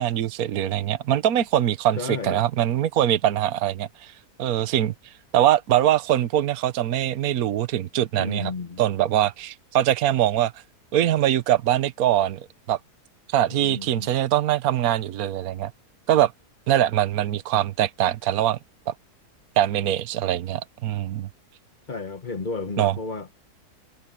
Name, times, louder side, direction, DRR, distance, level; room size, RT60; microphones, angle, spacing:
voice 1, 0.0-4.1 4.4-4.9 5.3-8.5 8.8-10.5 10.9-12.8 13.3-15.7 16.1-16.3 16.7-18.6 18.9-19.0 19.6-21.3 22.8-22.9, right 12 dB, 65° right, 1.3 m, -22 dB
voice 2, 2.0-2.4 8.2-8.8 13.5-14.1 21.9-23.3, left 4 dB, 30° left, 1.3 m, -32 dB
omnidirectional pair, 1.7 m